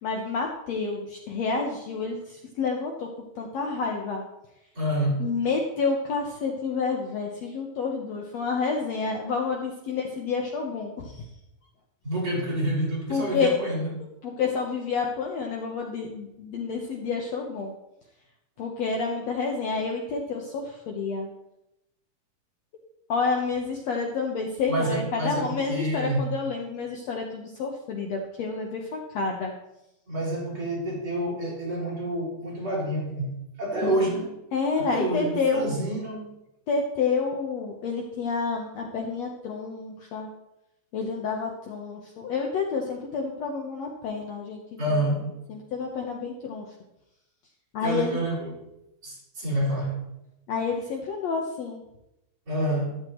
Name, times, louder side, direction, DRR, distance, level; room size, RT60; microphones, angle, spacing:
voice 1, 0.0-3.1 3.4-4.2 5.2-11.2 13.1-13.6 14.2-17.7 18.6-21.3 23.1-29.5 33.8-33.9 34.5-35.7 36.7-40.3 40.9-44.6 44.9-45.0 45.5-46.7 47.7-48.2 50.5-51.8, left 4 dB, 65° left, 1 dB, 2.0 m, -29 dB
voice 2, 4.7-5.3 12.0-13.9 24.7-26.3 30.1-34.3 34.7-36.3 44.8-45.4 47.8-48.7 49.0-50.0 52.5-52.9, right 1 dB, 30° right, -7 dB, 5.6 m, -28 dB
13.0 x 11.0 x 3.1 m, 0.87 s
omnidirectional pair, 3.7 m